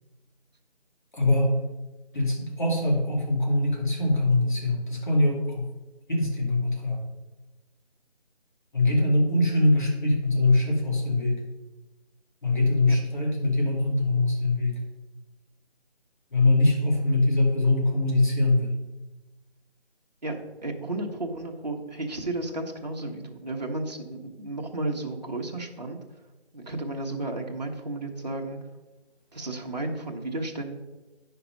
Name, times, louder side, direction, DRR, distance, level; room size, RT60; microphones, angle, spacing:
voice 1, 1.1-1.5 2.1-5.7 6.1-7.0 8.7-11.4 12.4-14.7 16.3-18.7, left 2 dB, 45° left, -1 dB, 2.4 m, -23 dB
voice 2, 20.2-26.0 26.5-28.6 29.3-30.8, right 2 dB, 40° right, 1 dB, 1.1 m, -33 dB
9.7 x 5.8 x 5.1 m, 1.1 s
figure-of-eight pair, 175°, 34 cm